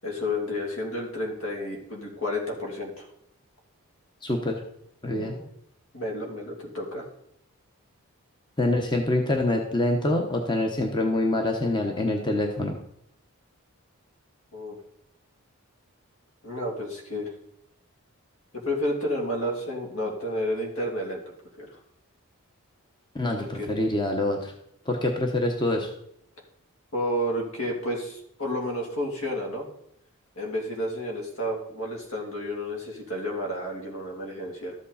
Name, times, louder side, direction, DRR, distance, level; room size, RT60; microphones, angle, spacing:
voice 1, 0.0-3.1 5.1-5.4 5.9-7.1 14.5-14.8 16.4-17.3 18.5-21.2 21.6-21.7 23.4-23.7 26.9-29.7 30.4-34.7, left 1 dB, 65° left, 0 dB, 2.9 m, -31 dB
voice 2, 4.2-4.6 5.0-5.3 8.6-12.8 23.1-24.5 24.9-25.9, left 1 dB, 20° left, 3 dB, 1.0 m, -25 dB
13.0 x 8.2 x 4.2 m, 0.73 s
head